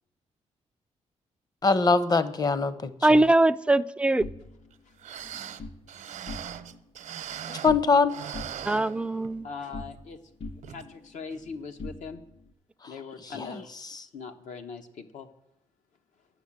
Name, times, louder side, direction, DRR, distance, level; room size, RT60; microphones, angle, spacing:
voice 1, 1.6-3.2 7.5-8.1 12.8-12.9 13.2-14.0, left 4 dB, 30° left, 14 dB, 0.7 m, -24 dB
voice 2, 3.0-4.2 8.7-9.4, right 2 dB, 10° right, 14 dB, 0.3 m, -21 dB
sound 1, 4.2-5.8 6.2-6.8 7.1-8.0 8.3-10.1 10.4-12.5, left 3 dB, 55° left, 2.6 m, -43 dB
sound 2, 4.7-4.8 5.0-7.8 8.1-9.5 9.9-10.0 10.6-10.9 11.3-11.4, right 9 dB, 80° right, 0.7 m, -40 dB
voice 3, 9.4-10.2 10.7-10.8 11.1-12.2 12.9-13.7 14.1-15.3, left 5 dB, 80° left, 6 dB, 1.1 m, -40 dB
10.0 x 6.2 x 8.7 m, 0.81 s
cardioid pair, 95°, 13 cm